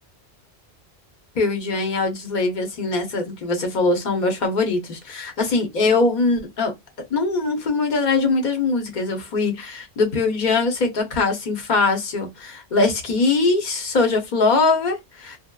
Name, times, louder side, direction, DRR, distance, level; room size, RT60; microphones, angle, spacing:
voice 1, 1.3-6.7 7.1-15.4, left 3 dB, 50° left, 0.8 m, -22 dB
2.9 x 2.0 x 2.2 m
omnidirectional pair, 1.1 m